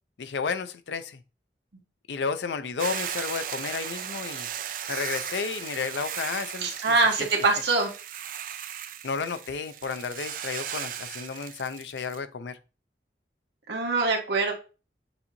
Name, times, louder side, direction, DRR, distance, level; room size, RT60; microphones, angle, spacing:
voice 1, 0.2-1.2 2.1-4.5 4.9-7.0 9.0-12.6, left 5 dB, 85° left, 0.5 m, -32 dB
Hiss / Boiling, 2.8-12.2, right 9 dB, 50° right, 0.4 m, -37 dB
voice 2, 6.6-7.9 13.7-14.5, right 3 dB, 80° right, 1.2 m, -24 dB
7.0 x 2.8 x 2.6 m
head